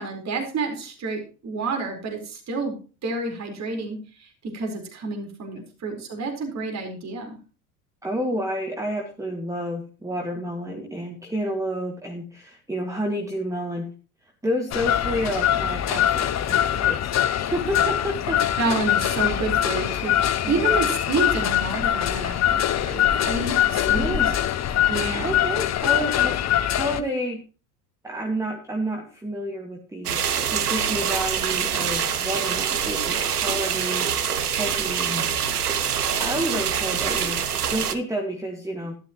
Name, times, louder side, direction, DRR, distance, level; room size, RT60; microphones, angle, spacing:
voice 1, 0.0-7.4 18.6-24.2 24.9-25.3, right 3 dB, 35° right, 3 dB, 4.4 m, -29 dB
voice 2, 8.0-13.9 14.4-18.8 20.4-20.8 23.8-24.4 25.2-26.4 26.8-27.4 28.0-34.1 34.6-35.3 36.2-37.4 37.7-38.9, equal, 5° right, 3 dB, 2.0 m, -30 dB
sound 1, 14.7-27.0, left 11 dB, 35° left, 1.0 m, -23 dB
sound 2, 30.1-38.0, right 8 dB, 85° right, 1.0 m, -25 dB
13.0 x 11.5 x 3.0 m, 0.36 s
figure-of-eight pair, 65°, 44 cm